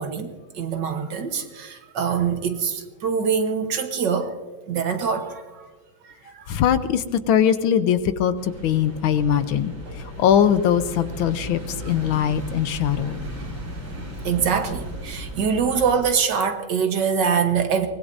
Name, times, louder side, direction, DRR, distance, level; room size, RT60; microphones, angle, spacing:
voice 1, 0.0-4.4 4.7-5.7 6.0-6.6 14.2-17.9, right 6 dB, 65° right, 6 dB, 1.8 m, -24 dB
voice 2, 6.5-9.7 10.2-11.6 11.9-13.2, left 9 dB, 85° left, 12 dB, 1.6 m, -21 dB
sound 1, 8.4-16.0, right 1 dB, 80° right, 6.5 m, -35 dB
23.5 x 20.0 x 2.7 m, 1.4 s
omnidirectional pair, 2.2 m